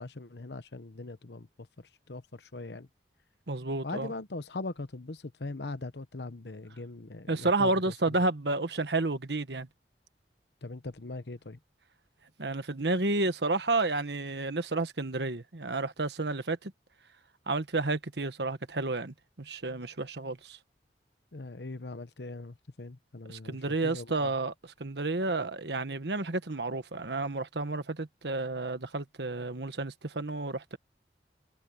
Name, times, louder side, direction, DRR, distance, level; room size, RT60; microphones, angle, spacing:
voice 1, 0.0-1.5 1.8-2.9 3.8-7.9 10.6-11.6 21.3-24.3, left 2 dB, 70° left, 1.0 m, -41 dB
voice 2, 3.5-4.1 7.3-9.7 12.4-16.7 17.5-20.6 23.3-24.5 24.8-30.8, right 2 dB, 70° right, 1.4 m, -31 dB
head